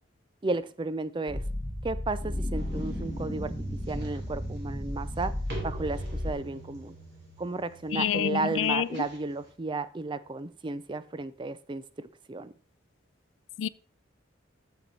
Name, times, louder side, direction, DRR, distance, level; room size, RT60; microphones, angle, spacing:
voice 1, 0.4-1.4 1.8-3.5 3.9-5.3 5.6-6.9 7.4-11.8 12.3-12.5, right 3 dB, 25° right, 0.4 m, -33 dB
sound 1, 1.3-6.3, left 1 dB, 10° left, 1.2 m, -34 dB
sound 2, 2.5-9.5, right 2 dB, 55° right, 3.0 m, -46 dB
voice 2, 7.9-9.0 13.6-13.7, left 9 dB, 75° left, 0.4 m, -27 dB
7.7 x 7.0 x 4.1 m
head